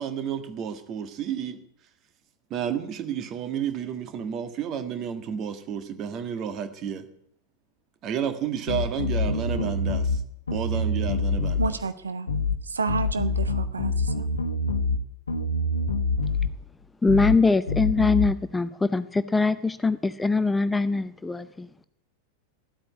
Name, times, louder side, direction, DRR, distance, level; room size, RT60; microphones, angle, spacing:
voice 1, 0.0-1.6 2.5-7.1 8.0-10.2 10.5-11.8, right 8 dB, 35° right, 9 dB, 1.7 m, -31 dB
sound 1, 8.7-10.2 10.5-11.7 12.3-12.6 12.9-15.0 15.3-16.5 17.1-17.4 17.7-18.3, left 3 dB, 75° left, 1.2 m, -26 dB
voice 2, 11.6-12.3 12.6-14.2, right 4 dB, 75° right, 12 dB, 0.7 m, -30 dB
voice 3, 17.0-21.7, left 3 dB, 10° left, 13 dB, 0.6 m, -23 dB
13.0 x 8.7 x 9.5 m, 0.72 s
figure-of-eight pair, 90°, 0 cm